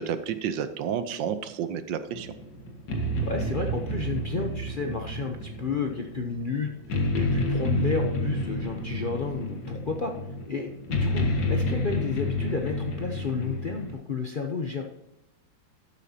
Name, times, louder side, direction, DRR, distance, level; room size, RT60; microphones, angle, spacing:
voice 1, 0.0-2.3, right 8 dB, 80° right, 11 dB, 1.5 m, -30 dB
sound 1, 2.1-13.9, left 1 dB, 70° left, 2.1 m, -29 dB
voice 2, 3.2-10.1 10.5-14.8, left 4 dB, 50° left, 2 dB, 0.6 m, -31 dB
12.5 x 8.4 x 2.8 m, 0.90 s
omnidirectional pair, 2.0 m